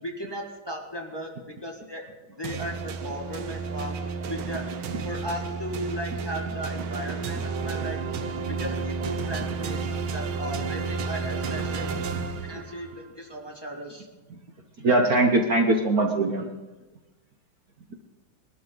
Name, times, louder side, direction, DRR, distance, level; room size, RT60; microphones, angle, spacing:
voice 1, 0.0-2.0 2.3-4.6 5.0-8.0 8.5-12.0 12.5-14.1, equal, 15° left, 0 dB, 1.6 m, -36 dB
sound 1, 2.4-13.0, right 5 dB, 80° right, 1.7 m, -31 dB
voice 2, 14.8-16.5 17.9-18.0, right 2 dB, 50° right, 3 dB, 1.3 m, -22 dB
21.0 x 12.5 x 3.9 m, 1.2 s
omnidirectional pair, 2.3 m